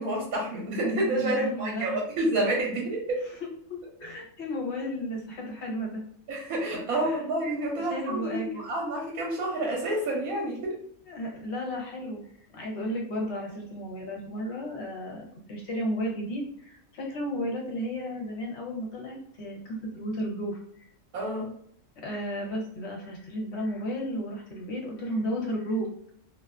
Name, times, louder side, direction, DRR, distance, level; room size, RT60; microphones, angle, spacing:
voice 1, 0.0-3.2 6.3-10.8 21.1-21.5, right 1 dB, 80° right, -2 dB, 1.1 m, -29 dB
voice 2, 1.2-2.0 3.4-6.0 6.9-7.2 7.6-8.7 11.1-20.8 22.0-25.9, equal, 60° left, -1 dB, 0.9 m, -33 dB
2.4 x 2.3 x 2.2 m, 0.63 s
omnidirectional pair, 1.5 m